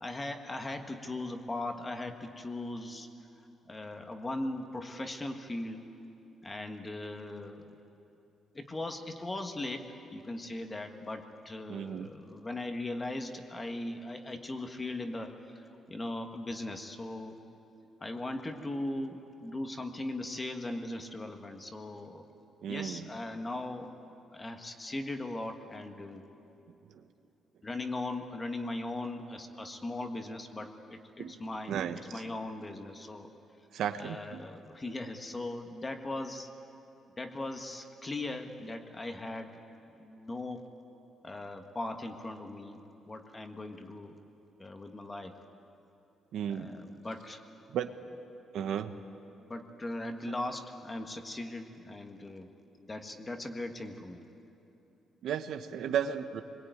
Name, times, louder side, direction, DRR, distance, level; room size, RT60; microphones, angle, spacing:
voice 1, 0.0-3.1 3.7-5.8 6.4-7.6 8.5-17.4 18.0-22.2 22.6-23.9 24.3-26.2 27.6-31.8 32.1-33.3 34.0-36.5 37.2-39.5 40.0-40.6 41.2-42.8 43.1-44.2 44.6-45.4 46.5-47.4 49.4-52.5 52.8-54.2, left 2 dB, 20° left, 5 dB, 1.6 m, -39 dB
voice 2, 11.7-12.1 22.6-23.1 26.9-27.0 31.2-31.3 31.7-32.2 33.7-34.4 46.3-46.7 47.7-47.9 48.5-49.0 55.2-56.4, right 9 dB, 70° right, 8 dB, 1.1 m, -34 dB
24.5 x 22.0 x 9.3 m, 3.0 s
cardioid pair, 150°, 0 cm